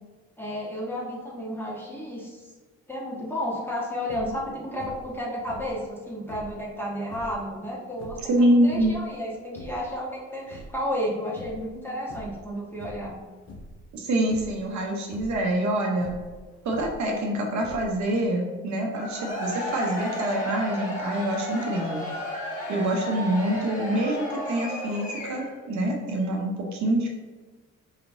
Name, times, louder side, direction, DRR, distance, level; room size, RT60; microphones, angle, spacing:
voice 1, 0.4-2.5 2.9-13.2, equal, 5° left, -5 dB, 1.3 m, -32 dB
sound 1, 4.0-4.4 4.8-5.2 5.4-6.6 7.0-7.4 7.9-9.1 9.4-9.9 10.3-11.1 11.4-11.7 12.0-12.4 12.8-13.1 13.4-13.8 14.3-14.6 15.0-15.4 15.9-17.1 17.6-18.1, left 1 dB, 55° left, 0.7 m, -43 dB
voice 2, 8.3-9.0 13.9-16.2 16.6-22.0 22.7-27.1, right 1 dB, 65° right, 0 dB, 0.8 m, -25 dB
Cheering / Crowd, 18.9-25.6, equal, 25° left, 1.3 m, -33 dB
4.9 x 3.0 x 2.6 m, 1.3 s
cardioid pair, 90°, 30 cm